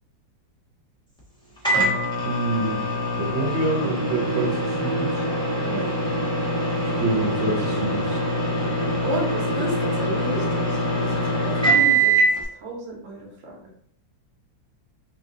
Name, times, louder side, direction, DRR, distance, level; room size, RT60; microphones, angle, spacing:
Microwave oven, 1.6-12.4, right 1 dB, 5° left, 0.3 m, -23 dB
voice 1, 2.2-2.8 3.2-5.3 6.8-8.2, right 2 dB, 85° right, 0 dB, 1.5 m, -27 dB
voice 2, 5.6-6.0 9.0-12.2 12.5-13.6, right 1 dB, 45° right, -2 dB, 1.3 m, -32 dB
3.2 x 2.6 x 3.7 m, 0.62 s
omnidirectional pair, 2.1 m